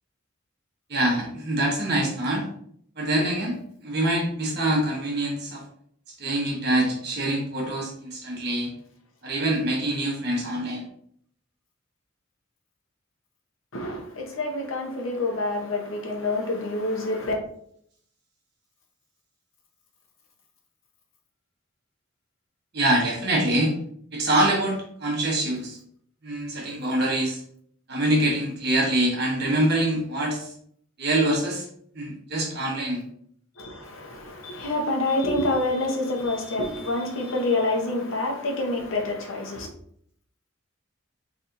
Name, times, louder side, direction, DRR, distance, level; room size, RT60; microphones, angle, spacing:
voice 1, 0.9-2.4 3.0-3.6 3.8-5.6 6.2-8.7 9.2-10.8 22.7-23.7 24.1-25.8 26.2-27.4 27.9-30.5 31.0-31.6 31.9-33.0, right 1 dB, 50° right, 1.2 m, -25 dB
voice 2, 13.7-17.3 33.6-39.7, left 2 dB, 70° left, 0.9 m, -27 dB
4.2 x 3.4 x 2.6 m
head